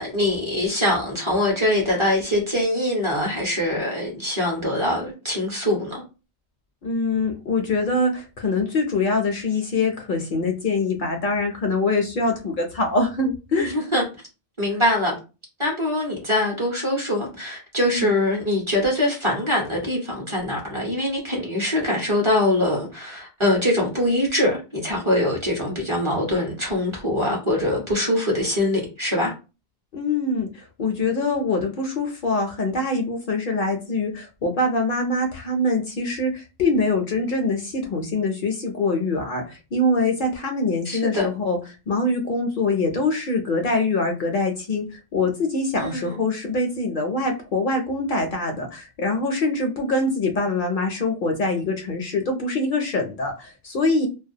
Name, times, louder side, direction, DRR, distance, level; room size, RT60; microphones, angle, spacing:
voice 1, 0.0-6.0 13.6-14.0 14.6-15.2 15.6-29.3 40.8-41.3 45.8-46.2, left 1 dB, 35° right, 0.7 m, -23 dB
voice 2, 6.8-13.8 17.9-18.1 29.9-41.6 41.9-54.1, left 2 dB, 60° left, 0.6 m, -24 dB
2.2 x 2.2 x 2.7 m
omnidirectional pair, 1.0 m